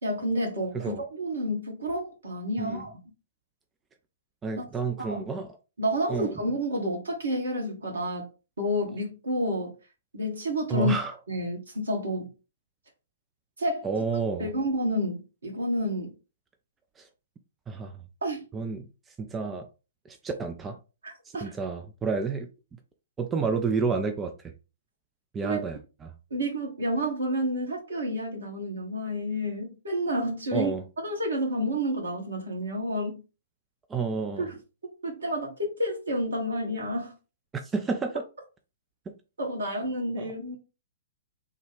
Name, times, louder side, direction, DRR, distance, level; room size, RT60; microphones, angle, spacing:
voice 1, 0.0-2.9 4.6-4.7 5.0-5.2 5.8-8.3 8.6-9.7 10.1-10.9 11.3-12.3 13.6-13.9 14.4-16.1 18.2-18.4 21.0-21.5 25.4-25.6 26.3-30.7 31.0-33.2 34.4-34.6 35.0-37.1 39.4-40.6, equal, 65° right, 1.3 m, -30 dB
voice 2, 4.4-5.5 6.1-6.4 10.7-11.2 13.8-14.5 17.0-17.1 17.7-18.0 18.5-18.9 19.2-19.7 20.1-20.8 21.2-22.5 23.2-24.5 25.3-26.1 30.5-30.8 33.9-34.5 37.6-38.2 39.1-39.2 40.2-40.3, right 5 dB, 15° right, 0.3 m, -30 dB
3.3 x 2.3 x 3.3 m
figure-of-eight pair, 115°, 0 cm